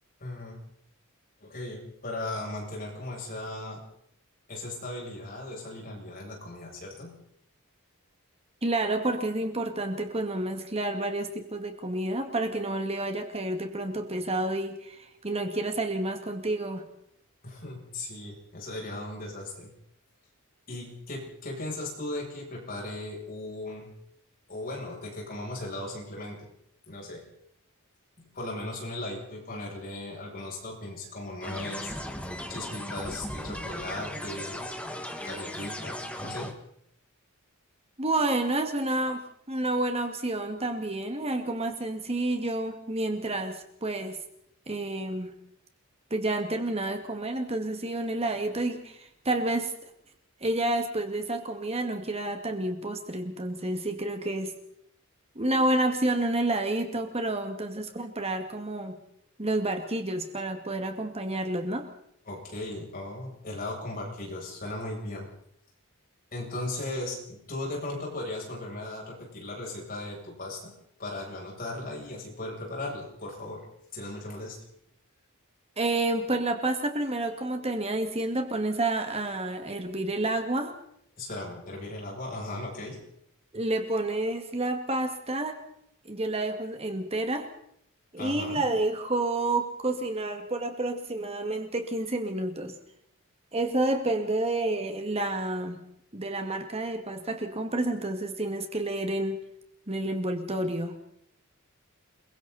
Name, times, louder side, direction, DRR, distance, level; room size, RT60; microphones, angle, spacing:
voice 1, 0.2-0.6 1.4-3.8 4.5-7.1 17.4-19.7 20.7-23.9 24.5-26.5 26.9-27.3 28.3-31.9 32.5-34.6 35.2-36.6 62.3-65.3 66.3-70.7 71.0-73.7 73.9-74.6 81.2-83.0 88.2-88.6, left 2 dB, 40° left, -2 dB, 7.8 m, -37 dB
voice 2, 8.6-16.9 38.0-39.2 39.5-44.2 44.7-45.3 46.1-49.7 50.4-54.5 55.4-59.0 59.4-61.9 75.8-80.7 83.5-85.6 86.1-87.5 88.1-92.8 93.5-95.8 96.1-99.4 99.9-101.0, right 2 dB, 30° right, 5 dB, 2.0 m, -29 dB
sound 1, 31.4-36.5, left 1 dB, 5° left, 2.0 m, -37 dB
30.0 x 22.5 x 4.2 m, 0.71 s
head